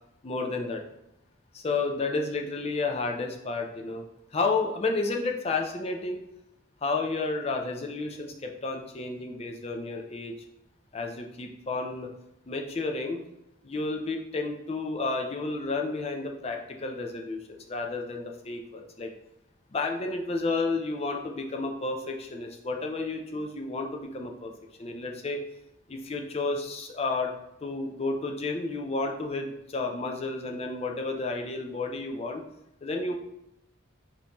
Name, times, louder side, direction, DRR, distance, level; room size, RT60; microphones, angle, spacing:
voice 1, 0.2-0.8 1.5-4.1 4.3-6.2 6.8-10.3 10.9-12.1 12.5-13.2 13.6-19.1 19.7-24.5 24.8-25.4 25.9-27.3 27.6-32.4 32.8-33.1, left 3 dB, 30° left, 3 dB, 0.4 m, -31 dB
5.3 x 2.7 x 2.9 m, 0.85 s
head